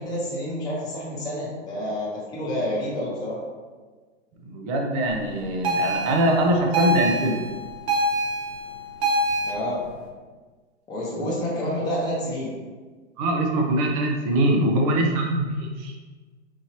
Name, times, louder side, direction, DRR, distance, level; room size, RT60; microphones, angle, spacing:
voice 1, 0.0-3.4 9.4-9.9 10.9-12.5, equal, 10° left, -7 dB, 0.9 m, -29 dB
voice 2, 4.4-7.4 11.2-11.3 13.2-15.9, right 1 dB, 30° right, 1 dB, 0.6 m, -23 dB
sound 1, 5.6-9.5, right 1 dB, 60° right, 1.1 m, -25 dB
4.4 x 2.8 x 2.9 m, 1.4 s
hypercardioid pair, 130°, 35 cm